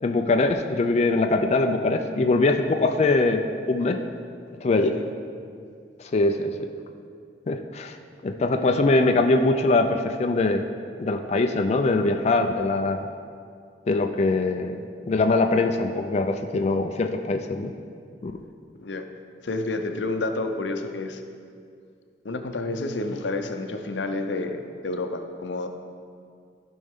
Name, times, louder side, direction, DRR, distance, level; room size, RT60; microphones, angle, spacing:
voice 1, 0.0-4.0 4.6-4.9 6.0-6.5 7.5-8.0 8.2-10.6 11.0-13.0 13.9-14.8 15.0-17.7 18.2-18.3, left 2 dB, 40° left, 4 dB, 0.4 m, -22 dB
voice 2, 4.7-5.1 18.8-19.1 19.4-21.2 22.2-25.7, left 2 dB, 85° left, 6 dB, 0.7 m, -30 dB
14.5 x 5.3 x 3.6 m, 2.3 s
head